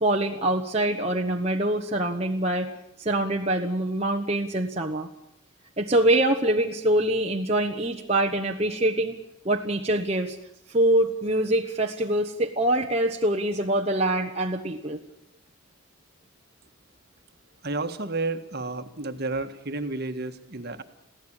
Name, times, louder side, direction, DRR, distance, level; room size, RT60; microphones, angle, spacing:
voice 1, 0.0-2.7 3.0-5.1 5.8-9.2 9.4-10.4 10.7-15.0, right 1 dB, 30° right, 2 dB, 1.1 m, -24 dB
voice 2, 17.6-20.8, right 3 dB, 50° right, 8 dB, 1.5 m, -31 dB
22.5 x 16.0 x 8.9 m, 0.83 s
head